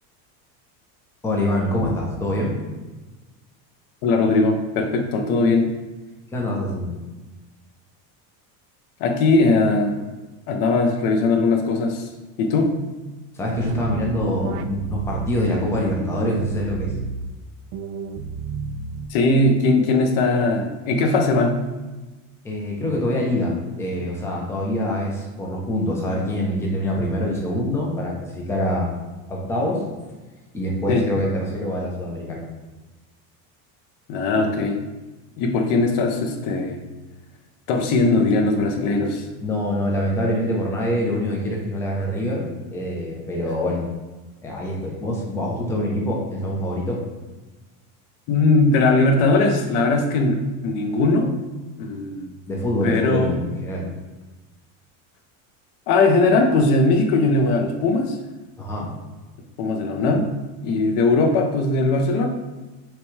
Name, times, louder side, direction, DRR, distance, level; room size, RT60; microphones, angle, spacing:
voice 1, 1.2-2.5 6.3-6.9 13.3-16.9 22.4-28.9 29.3-29.8 30.5-32.4 39.4-42.4 42.7-43.8 44.4-47.0 52.5-53.8 58.6-58.9, left 1 dB, 5° left, -2 dB, 0.5 m, -25 dB
voice 2, 4.0-5.7 9.0-10.0 10.5-12.1 12.4-12.7 19.1-21.6 30.9-31.1 34.1-34.8 35.4-36.8 37.7-39.3 48.3-51.4 51.8-52.3 52.8-53.4 55.9-58.2 59.6-60.3 60.6-62.3, left 3 dB, 50° left, 4 dB, 0.6 m, -19 dB
sound 1, 13.5-15.5 15.9-17.3 17.7-19.3, right 5 dB, 80° right, 0.5 m, -32 dB
5.8 x 2.3 x 3.1 m, 1.2 s
cardioid pair, 155°, 44 cm